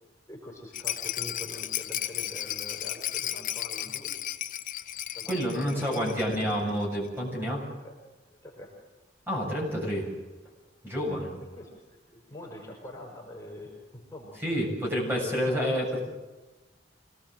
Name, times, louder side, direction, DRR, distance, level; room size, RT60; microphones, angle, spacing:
voice 1, 0.3-4.1 5.1-6.1 7.8-7.9 8.3-8.8 11.1-11.2 11.5-14.4 15.0-15.6, left 1 dB, 15° left, -2 dB, 5.6 m, -45 dB
Rattle, 0.7-6.4 6.7-6.8 7.0-7.1, left 12 dB, 50° left, 0.9 m, -34 dB
voice 2, 5.3-7.6 9.3-10.1 10.8-11.3 14.4-16.0, equal, 15° right, -3 dB, 7.4 m, -29 dB
26.0 x 18.5 x 7.7 m, 1.1 s
head